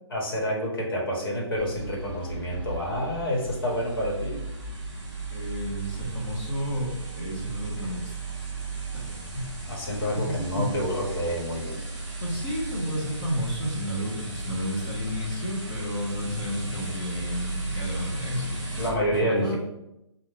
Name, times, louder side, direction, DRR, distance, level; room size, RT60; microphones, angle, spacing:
voice 1, 0.1-4.4 9.7-11.9 16.2-16.5 18.8-19.6, equal, 50° left, -3 dB, 1.4 m, -28 dB
sound 1, 1.6-18.9, right 2 dB, 10° right, 0.5 m, -35 dB
voice 2, 5.3-8.2 8.9-9.6 10.1-10.7 12.2-19.5, equal, 20° left, -5 dB, 1.1 m, -32 dB
3.5 x 2.5 x 4.5 m, 0.86 s
hypercardioid pair, 170°, 15 cm